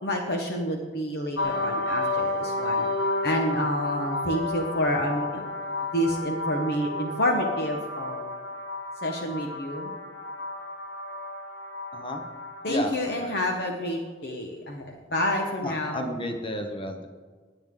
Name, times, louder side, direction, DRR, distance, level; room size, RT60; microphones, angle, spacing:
voice 1, 0.0-2.9 3.2-5.4 5.9-8.3 9.0-9.9 12.6-16.1, equal, 60° left, 2 dB, 1.3 m, -28 dB
sound 1, 1.4-13.0, left 2 dB, 75° left, 1.4 m, -31 dB
voice 2, 12.7-13.3 15.6-17.1, left 1 dB, 25° left, 5 dB, 1.1 m, -32 dB
19.5 x 9.1 x 3.8 m, 1.5 s
head